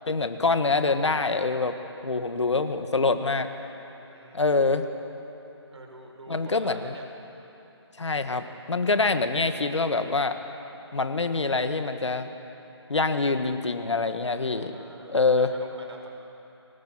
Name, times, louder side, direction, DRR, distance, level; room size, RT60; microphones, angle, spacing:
voice 1, 0.1-1.8 2.0-3.5 4.3-4.9 6.3-6.9 8.0-10.4 10.9-12.3 12.9-14.7 15.1-15.5, left 3 dB, 85° left, 8 dB, 1.7 m, -25 dB
voice 2, 4.0-4.7 5.7-7.0 14.5-16.1, right 2 dB, 80° right, 2 dB, 4.9 m, -47 dB
23.5 x 19.0 x 7.6 m, 3.0 s
figure-of-eight pair, 165°, 15 cm